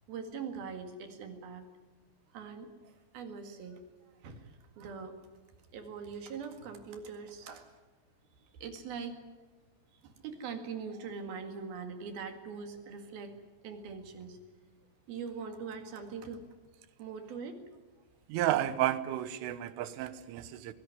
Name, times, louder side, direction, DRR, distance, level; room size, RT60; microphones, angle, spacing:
voice 1, 0.1-1.6 2.3-3.8 4.2-5.2 5.7-7.7 8.5-9.2 9.9-13.4 13.6-14.4 15.1-16.4 17.0-17.6, right 5 dB, 55° right, 6 dB, 3.4 m, -42 dB
voice 2, 18.3-20.7, right 13 dB, 80° right, 13 dB, 3.5 m, -32 dB
23.5 x 17.0 x 9.7 m, 1.3 s
omnidirectional pair, 5.8 m